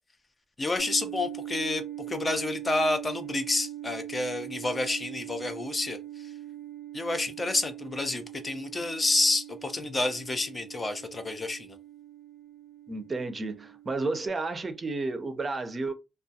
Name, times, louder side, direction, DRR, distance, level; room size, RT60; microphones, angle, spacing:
voice 1, 0.6-6.3 6.9-11.8, left 2 dB, 25° left, 0.4 m, -29 dB
sound 1, 0.8-14.3, right 12 dB, 75° left, 0.9 m, -42 dB
voice 2, 12.9-15.9, right 3 dB, 30° right, 0.5 m, -32 dB
2.2 x 2.2 x 2.7 m
cardioid pair, 90°, 0 cm